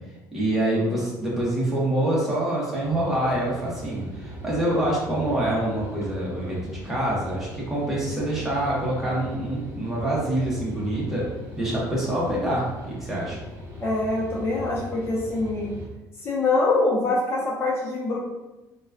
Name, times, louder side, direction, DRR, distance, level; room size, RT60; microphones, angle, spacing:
voice 1, 0.3-11.3 11.5-13.4, right 1 dB, 5° right, -7 dB, 1.0 m, -26 dB
sound 1, 2.8-15.9, equal, 30° right, 0.9 m, -39 dB
voice 2, 13.8-15.7 16.2-18.2, left 2 dB, 35° left, -6 dB, 0.9 m, -24 dB
3.9 x 2.3 x 2.4 m, 1.1 s
cardioid pair, 150°, 7 cm